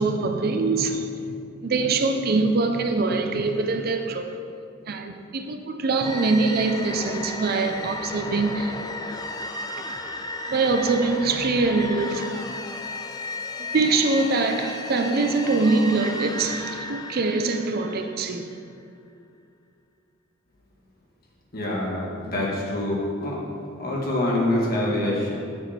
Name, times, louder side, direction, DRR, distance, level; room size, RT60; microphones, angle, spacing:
voice 1, 0.0-1.4 1.6-4.3 4.9-8.7 10.5-12.3 13.7-18.5, right 3 dB, 50° right, 0.5 m, -23 dB
sound 1, 6.0-18.5, left 2 dB, 20° left, 0.4 m, -34 dB
voice 2, 21.5-23.4 23.8-25.3, left 1 dB, 50° left, 1.5 m, -25 dB
7.0 x 6.1 x 4.3 m
head